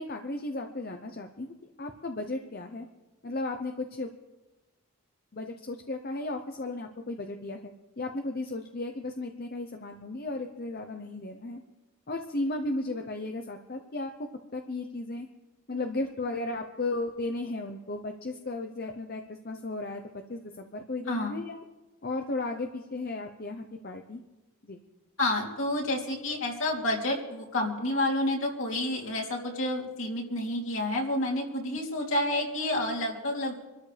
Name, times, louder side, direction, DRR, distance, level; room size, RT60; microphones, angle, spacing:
voice 1, 0.0-2.9 3.2-4.1 5.3-11.6 12.1-14.1 14.5-15.3 15.7-21.6 22.0-24.2 24.6-24.8, left 2 dB, 45° left, 5 dB, 0.8 m, -35 dB
voice 2, 25.2-33.5, left 1 dB, 65° left, -2 dB, 3.1 m, -29 dB
26.5 x 13.0 x 3.4 m, 1.1 s
head